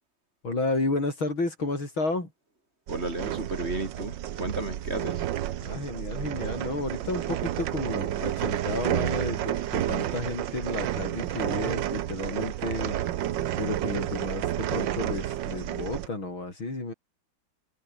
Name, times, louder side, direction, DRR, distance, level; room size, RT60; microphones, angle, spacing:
voice 1, 0.4-2.3 5.6-13.0 13.6-16.9, left 2 dB, 80° left, 7.7 m, -32 dB
voice 2, 2.9-5.2, right 2 dB, 30° right, 3.6 m, -33 dB
sound 1, 2.9-16.1, right 12 dB, 70° right, 1.5 m, -30 dB
omnidirectional pair, 2.2 m